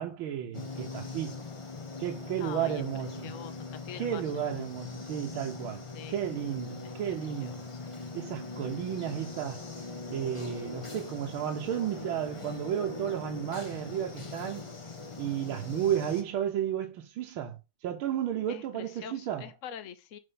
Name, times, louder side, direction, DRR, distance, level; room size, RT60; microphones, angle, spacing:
voice 1, 0.0-1.4 2.0-3.1 3.9-7.6 8.1-9.7 10.1-14.7 15.2-19.4, right 10 dB, 75° right, 1.7 m, -33 dB
sound 1, 0.5-16.2, left 3 dB, 25° left, 0.7 m, -41 dB
voice 2, 2.4-2.8 3.2-4.6 5.9-7.8 18.5-20.2, left 9 dB, 55° left, 0.9 m, -45 dB
6.8 x 4.9 x 5.5 m
omnidirectional pair, 2.3 m